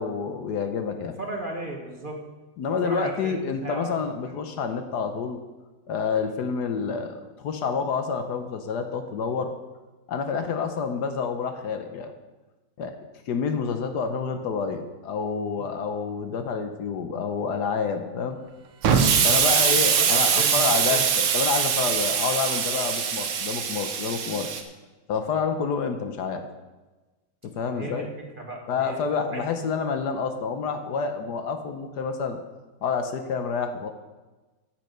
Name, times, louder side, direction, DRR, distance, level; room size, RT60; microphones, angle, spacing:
voice 1, 0.0-1.1 2.6-5.4 5.9-9.5 10.1-12.1 12.8-13.0 13.3-18.4 19.2-24.5 25.1-26.4 27.4-28.1 28.7-32.4 32.8-33.9, left 5 dB, 70° left, 7 dB, 1.4 m, -28 dB
voice 2, 1.2-2.2 2.8-4.3 15.5-15.6 19.4-21.1 27.6-29.0 29.3-29.5, right 2 dB, 30° right, 1 dB, 1.4 m, -36 dB
Explosion, 18.8-24.6, right 7 dB, 90° right, 1.7 m, -22 dB
8.9 x 8.6 x 6.7 m, 1.2 s
omnidirectional pair, 2.0 m